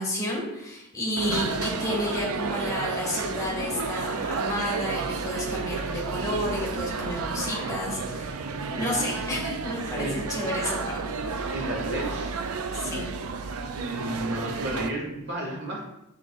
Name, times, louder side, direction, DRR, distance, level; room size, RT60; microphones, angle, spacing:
voice 1, 0.0-8.4 8.8-11.0 12.8-13.1, left 1 dB, 15° left, -4 dB, 1.9 m, -31 dB
sound 1, 1.2-14.9, right 4 dB, 75° right, 0.5 m, -31 dB
voice 2, 11.5-12.4 12.8-13.0 13.7-15.9, right 1 dB, 50° right, -2 dB, 1.9 m, -32 dB
7.1 x 6.5 x 2.5 m, 0.88 s
head